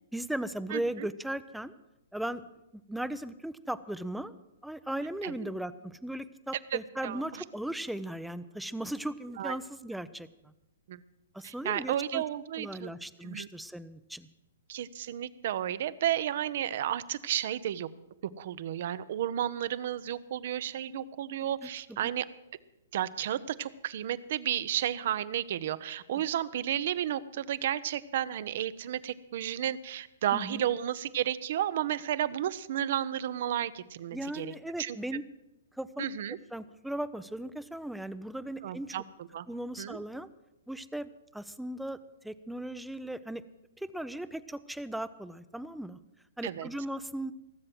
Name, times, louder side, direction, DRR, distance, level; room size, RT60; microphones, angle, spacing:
voice 1, 0.1-1.7 2.1-2.4 2.7-4.3 4.6-10.5 11.3-12.2 12.6-14.3 21.6-21.7 22.0-22.1 30.3-30.6 34.1-35.2 35.8-36.1 36.5-38.9 39.5-40.3 40.7-42.0 42.2-43.4 43.8-46.0 46.4-47.3, right 1 dB, ahead, 14 dB, 0.6 m, -37 dB
voice 2, 0.7-1.1 5.2-5.5 6.7-7.4 9.4-9.6 10.9-11.0 11.4-12.9 13.2-13.5 14.7-17.9 18.4-22.3 22.9-35.0 36.0-36.4 38.6-39.5 39.8-40.0 46.4-46.7, right 11 dB, 55° right, 16 dB, 0.7 m, -32 dB
18.0 x 7.7 x 7.8 m, 0.94 s
hypercardioid pair, 125°, 0 cm